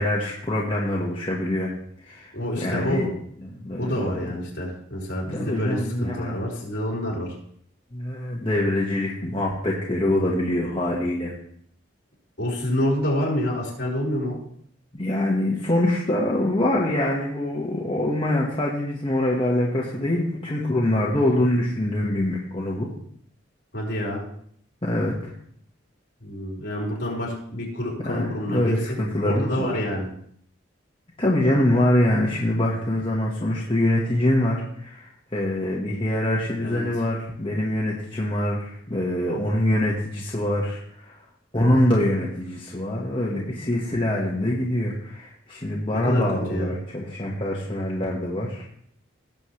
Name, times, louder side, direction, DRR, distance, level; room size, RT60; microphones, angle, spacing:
voice 1, 0.0-1.7 2.0-3.1 3.4-4.1 5.3-6.4 7.9-11.3 14.9-22.9 24.8-25.3 28.0-29.9 31.2-41.2 41.5-48.6, left 1 dB, 25° left, -4 dB, 1.5 m, -24 dB
voice 2, 2.3-3.1 3.8-7.3 12.4-14.4 23.7-24.2 26.2-29.0 29.2-30.1 36.6-36.8 45.9-46.8, left 1 dB, 55° left, -3 dB, 4.7 m, -27 dB
18.0 x 7.5 x 3.3 m, 0.65 s
head